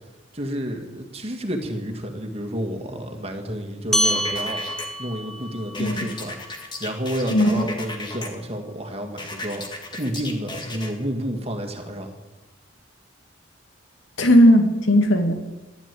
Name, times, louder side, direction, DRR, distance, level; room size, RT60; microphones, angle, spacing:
voice 1, 0.3-4.6 5.0-9.6 9.9-12.1, equal, 30° right, 4 dB, 2.0 m, -30 dB
sound 1, 3.9-8.7, equal, ahead, 0.7 m, -29 dB
sound 2, 4.0-4.9 5.7-8.3 9.2-10.9, left 2 dB, 25° left, 2.0 m, -35 dB
voice 2, 7.3-7.7 14.2-15.3, equal, 75° left, 5 dB, 2.3 m, -17 dB
12.5 x 11.5 x 9.4 m, 1.1 s
head